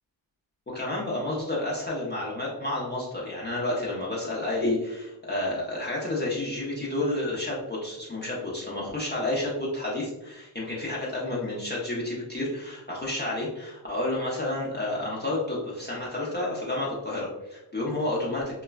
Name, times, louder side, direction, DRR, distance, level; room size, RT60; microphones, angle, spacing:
voice 1, 0.7-18.6, left 2 dB, 20° left, -6 dB, 0.7 m, -30 dB
3.0 x 2.2 x 2.2 m, 0.99 s
cardioid pair, 55°, 49 cm